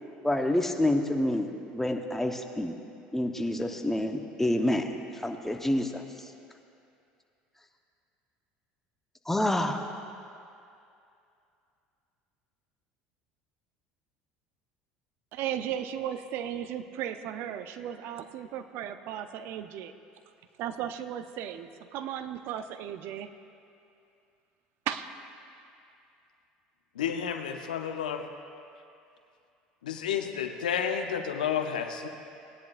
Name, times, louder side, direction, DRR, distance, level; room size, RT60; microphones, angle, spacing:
voice 1, 0.2-1.5 1.7-2.7 3.1-4.8 5.2-6.0 9.3-9.9, left 1 dB, 10° left, 4 dB, 1.0 m, -27 dB
voice 2, 15.3-19.9 20.6-23.3 24.9-25.1, right 10 dB, 60° right, 10 dB, 0.6 m, -35 dB
voice 3, 27.0-28.2 29.8-32.1, left 8 dB, 90° left, 6 dB, 0.7 m, -31 dB
18.5 x 10.5 x 2.5 m, 2.6 s
hypercardioid pair, 75°, 4 cm